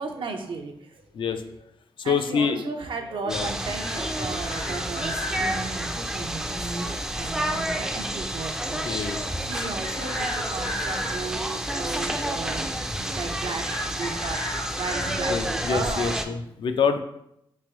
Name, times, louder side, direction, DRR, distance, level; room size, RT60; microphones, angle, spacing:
voice 1, 0.0-1.0 1.5-1.6 2.0-9.0 9.4-14.4 14.8-16.4, right 4 dB, 60° right, 5 dB, 0.5 m, -35 dB
voice 2, 2.0-2.6 3.3-3.6 8.8-9.2 15.3-17.0, left 6 dB, 60° left, 7 dB, 0.4 m, -26 dB
sound 1, 3.3-16.3, right 1 dB, 5° right, 0.4 m, -30 dB
Chicken rooster, 3.8-5.6 9.5-11.2 13.6-15.4, left 1 dB, 85° left, 1.4 m, -34 dB
3.2 x 2.9 x 3.5 m, 0.78 s
cardioid pair, 70°, 10 cm